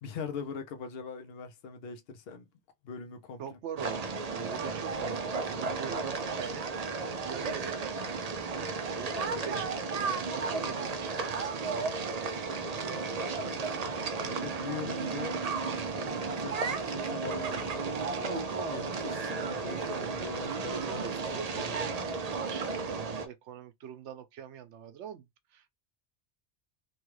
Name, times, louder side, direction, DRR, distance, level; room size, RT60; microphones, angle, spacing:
voice 1, 0.0-2.5 2.8-3.6 5.1-5.2 13.4-15.5 15.9-21.9, left 5 dB, 60° left, 0.8 m, -42 dB
voice 2, 3.4-6.7 7.2-8.3 8.7-12.1 19.4-19.5 20.9-22.0 22.2-25.7, right 8 dB, 85° right, 0.9 m, -43 dB
sound 1, 3.8-23.3, right 4 dB, 50° right, 0.5 m, -34 dB
3.1 x 2.3 x 3.1 m
omnidirectional pair, 1.2 m